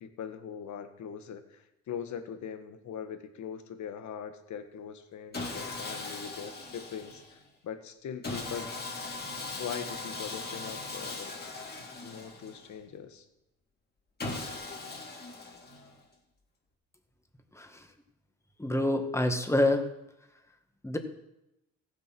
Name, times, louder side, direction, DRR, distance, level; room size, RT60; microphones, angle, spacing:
voice 1, 0.0-8.7 9.5-11.4 11.8-13.2, left 8 dB, 70° left, 8 dB, 1.6 m, -41 dB
Sawing, 5.3-7.4 8.2-12.8 14.2-16.0, left 3 dB, 30° left, 3.3 m, -39 dB
voice 2, 17.5-17.9 18.6-19.9 20.8-21.0, left 1 dB, 10° left, 6 dB, 1.8 m, -27 dB
15.5 x 7.8 x 6.1 m, 0.88 s
cardioid pair, 90°, 30 cm